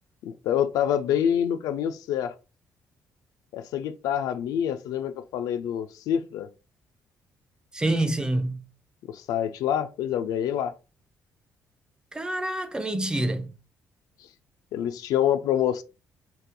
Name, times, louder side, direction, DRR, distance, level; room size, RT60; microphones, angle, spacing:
voice 1, 0.2-2.3 3.5-6.5 9.1-10.7 14.7-15.8, left 9 dB, 90° left, 0.4 m, -26 dB
voice 2, 7.7-8.6 12.1-13.5, right 1 dB, 15° right, 0.4 m, -27 dB
4.0 x 2.6 x 2.2 m
cardioid pair, 125°, 6 cm